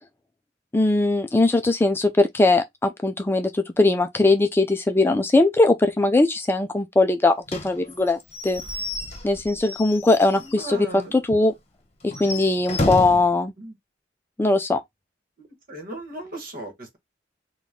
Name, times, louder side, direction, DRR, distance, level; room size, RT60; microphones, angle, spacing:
voice 1, 0.7-7.3 7.6-8.6 9.2-11.5 12.0-13.5 14.4-14.8, left 2 dB, 15° left, 0.3 m, -20 dB
Slam / Squeak / Wood, 7.5-10.7 11.0-11.1 11.4-11.5 12.0-13.3, left 2 dB, 35° left, 1.0 m, -31 dB
voice 2, 10.4-11.2 13.6-13.7 15.4-17.0, right 1 dB, 50° right, 1.3 m, -37 dB
4.0 x 2.3 x 3.5 m
head